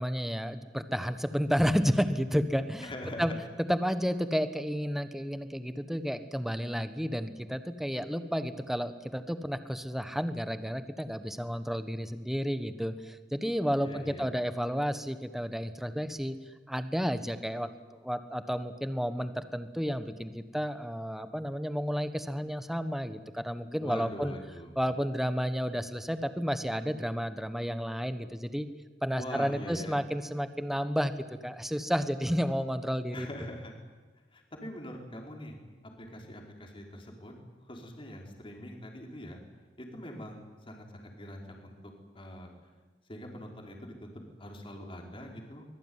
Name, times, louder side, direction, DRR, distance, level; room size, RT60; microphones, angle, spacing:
voice 1, 0.0-2.9 3.2-3.3 3.7-16.4 16.7-17.7 18.0-24.3 24.7-28.7 29.0-33.3, equal, ahead, 10 dB, 1.4 m, -31 dB
voice 2, 2.8-3.4 13.8-14.3 23.8-24.7 29.2-30.0 33.1-33.7 34.3-35.5 36.1-37.3 37.6-39.4 39.8-42.5 43.1-45.7, left 1 dB, 30° left, 1 dB, 4.8 m, -43 dB
24.5 x 21.5 x 9.7 m, 1.3 s
head